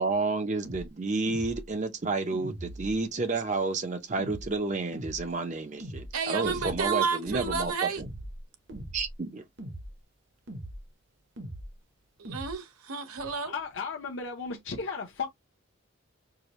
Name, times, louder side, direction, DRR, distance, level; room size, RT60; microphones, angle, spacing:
voice 1, 0.0-8.1 8.9-9.4, right 3 dB, 35° right, 0.5 m, -30 dB
sound 1, 0.6-0.9 1.3-1.7 2.3-3.0 4.2-4.5 4.9-5.3 5.8-6.1 6.4-6.8 7.2-7.7 8.0-8.4 8.7-9.1 9.6-9.9 10.5-10.8 11.4-11.7 12.2-12.5, right 1 dB, 55° right, 0.9 m, -40 dB
voice 2, 6.1-8.0 12.2-13.5, right 6 dB, 85° right, 0.8 m, -31 dB
voice 3, 13.5-15.3, left 5 dB, 60° left, 0.7 m, -35 dB
4.7 x 2.1 x 3.0 m
head